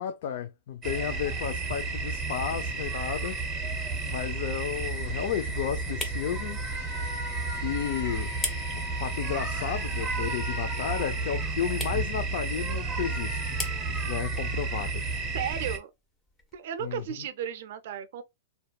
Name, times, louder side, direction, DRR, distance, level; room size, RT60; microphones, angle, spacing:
voice 1, 0.0-3.4 4.1-6.6 7.6-8.3 8.7-13.6 13.9-15.0 16.8-17.0, left 9 dB, 60° left, 0.4 m, -33 dB
sound 1, 0.8-15.8, right 3 dB, 20° right, 0.6 m, -32 dB
sound 2, 2.4-17.2, left 2 dB, 15° left, 0.7 m, -45 dB
Wind instrument woodwind instrument, 6.7-11.2, left 5 dB, 85° left, 0.9 m, -45 dB
voice 2, 15.3-15.9 16.5-18.2, right 9 dB, 60° right, 0.4 m, -34 dB
2.8 x 2.2 x 2.2 m
hypercardioid pair, 130°, 0 cm